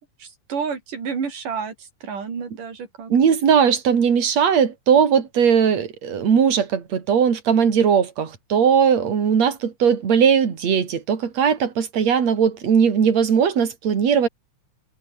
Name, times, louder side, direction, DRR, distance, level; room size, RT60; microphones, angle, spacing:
voice 1, 0.2-3.1, right 6 dB, 75° right, 5.7 m, -30 dB
voice 2, 3.1-14.3, right 7 dB, 55° right, 4.2 m, -19 dB
omnidirectional pair, 3.8 m